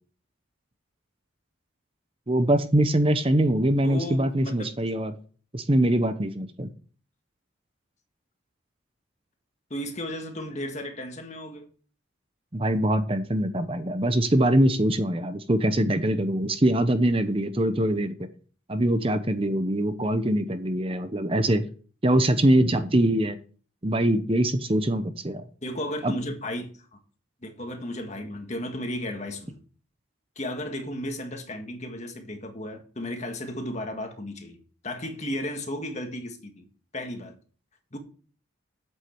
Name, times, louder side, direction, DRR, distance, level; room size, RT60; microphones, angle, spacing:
voice 1, 2.3-5.1 5.5-6.7 12.5-18.3 18.7-21.7 22.0-23.4 23.8-25.4 26.0-26.1, right 1 dB, 25° right, 0.9 m, -23 dB
voice 2, 3.8-4.7 9.7-11.7 25.6-27.0 27.4-29.6 30.4-34.6 34.8-36.6 36.9-37.4 37.9-38.0, left 1 dB, 35° left, 1.8 m, -34 dB
8.2 x 7.5 x 7.8 m
head